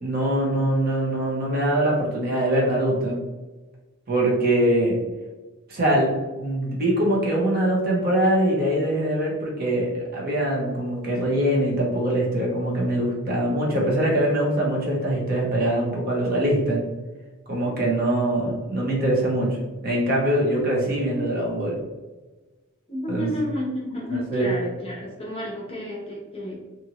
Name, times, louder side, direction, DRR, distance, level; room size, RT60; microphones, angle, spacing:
voice 1, 0.0-3.2 4.1-5.0 5.7-16.8 17.5-19.6 19.8-21.8 23.1-23.3 24.3-24.5, right 1 dB, 45° right, -3 dB, 0.8 m, -23 dB
voice 2, 22.9-26.6, left 1 dB, 25° left, -4 dB, 0.7 m, -31 dB
2.7 x 2.6 x 2.9 m, 1.2 s
head